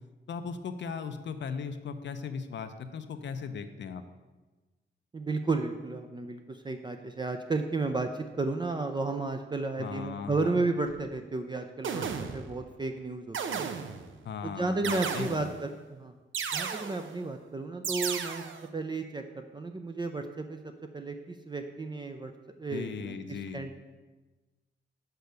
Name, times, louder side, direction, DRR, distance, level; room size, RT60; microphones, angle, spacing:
voice 1, 0.3-4.0 9.8-10.6 14.2-15.5 22.7-23.6, left 6 dB, 65° left, 8 dB, 0.6 m, -38 dB
voice 2, 5.1-13.6 14.4-16.1 16.5-18.4 18.7-20.6 20.9-22.3 22.6-23.8, right 3 dB, 25° right, 6 dB, 0.4 m, -33 dB
sound 1, 10.9-11.0 11.8-12.6 13.3-14.1 14.8-15.7 16.3-17.2 17.8-18.7, right 6 dB, 80° right, 0.6 m, -34 dB
6.8 x 4.6 x 6.6 m, 1.2 s
wide cardioid pair, 110°, 20 cm